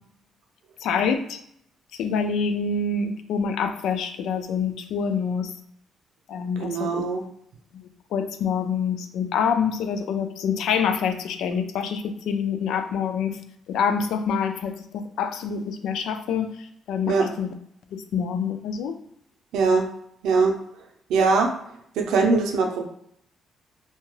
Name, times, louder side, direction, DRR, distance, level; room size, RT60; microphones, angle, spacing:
voice 1, 0.8-1.4 2.0-5.5 6.3-7.0 7.7-13.4 13.7-17.5 17.9-18.9, left 6 dB, 80° left, 8 dB, 0.3 m, -26 dB
voice 2, 6.6-7.2 17.1-17.3 19.5-19.9 20.2-20.5 21.1-21.5 22.0-22.9, right 4 dB, 85° right, 3 dB, 0.5 m, -21 dB
2.7 x 2.2 x 3.1 m, 0.71 s
cardioid pair, 90°, 0 cm